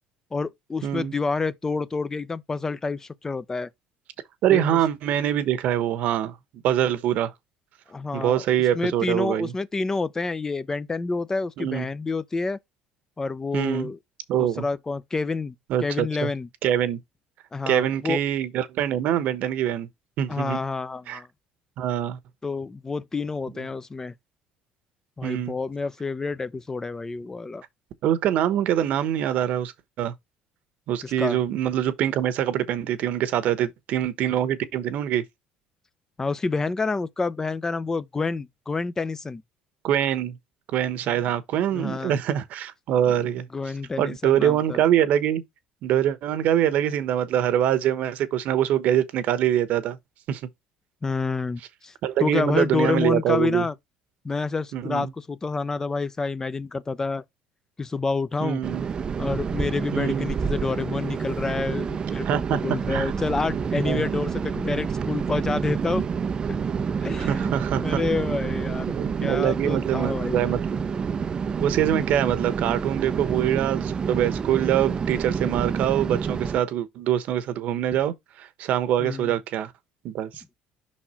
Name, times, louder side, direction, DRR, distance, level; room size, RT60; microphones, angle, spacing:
voice 1, 0.3-3.7 4.5-4.6 7.9-12.6 13.2-14.0 14.4-15.5 15.8-16.5 17.5-18.2 20.3-21.3 22.4-24.1 25.2-27.6 31.0-31.4 36.2-39.4 41.1-41.2 41.7-42.2 43.1-44.8 51.0-51.9 52.2-53.7 54.2-57.2 57.8-58.6 59.2-66.0 67.0-67.5 67.8-68.9 69.2-70.4 79.0-79.3, left 4 dB, 20° left, 0.6 m, -28 dB
voice 2, 0.8-1.1 4.4-6.4 6.6-7.3 8.1-9.5 11.6-11.8 13.5-13.9 14.3-14.6 15.7-16.3 16.6-17.0 17.7-19.9 20.2-20.6 21.1-21.2 21.8-22.2 25.2-25.5 28.0-29.7 30.0-30.1 30.9-35.2 39.8-40.4 40.7-43.5 44.0-45.4 45.8-50.0 50.3-50.4 52.0-53.7 54.7-55.1 58.4-58.8 59.9-60.3 62.2-62.6 62.9-63.1 63.8-64.1 67.2-68.0 69.0-70.8 71.6-79.7 80.0-80.3, right 10 dB, 60° right, 1.0 m, -24 dB
sound 1, 58.6-76.6, right 6 dB, 30° right, 0.5 m, -28 dB
5.8 x 4.2 x 4.4 m
cardioid pair, 110°, 3 cm